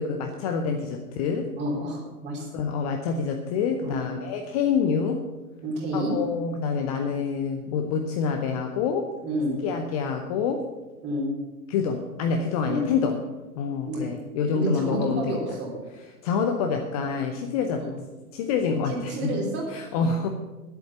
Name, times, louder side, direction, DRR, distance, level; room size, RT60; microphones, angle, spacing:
voice 1, 0.0-1.5 2.5-5.2 5.9-9.1 9.6-10.6 11.7-13.2 13.5-15.4 16.2-18.0 18.3-19.4 19.7-20.3, left 6 dB, 25° left, 5 dB, 0.7 m, -27 dB
voice 2, 1.6-2.5 3.8-4.0 5.6-6.2 9.2-9.6 11.0-11.3 12.7-12.9 13.9-14.1 14.5-15.7 17.8-18.0 18.9-19.7, right 1 dB, 25° right, -2 dB, 3.6 m, -29 dB
10.5 x 8.3 x 7.3 m, 1.2 s
figure-of-eight pair, 110°, 46 cm